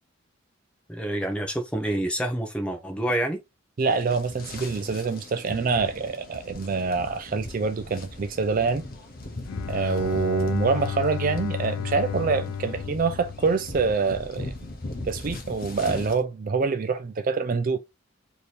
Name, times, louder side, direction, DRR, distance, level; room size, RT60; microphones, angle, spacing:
voice 1, 0.9-3.4, right 1 dB, 5° left, 0.8 m, -27 dB
sound 1, 3.8-16.2, left 2 dB, 45° left, 0.7 m, -39 dB
voice 2, 3.8-8.9 9.7-14.5 15.1-17.8, right 4 dB, 40° right, 0.3 m, -26 dB
Bowed string instrument, 9.5-14.1, left 8 dB, 90° left, 0.3 m, -32 dB
3.3 x 2.9 x 4.0 m
head